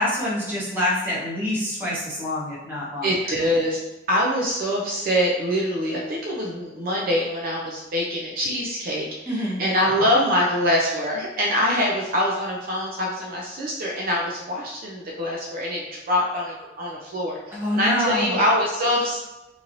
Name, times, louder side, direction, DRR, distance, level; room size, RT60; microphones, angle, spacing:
voice 1, 0.0-3.1 9.3-9.6 17.5-18.4, left 1 dB, 10° right, -7 dB, 0.9 m, -26 dB
voice 2, 3.0-3.8 4.1-19.2, equal, 50° right, -3 dB, 0.5 m, -24 dB
3.0 x 2.7 x 2.6 m, 1.0 s
head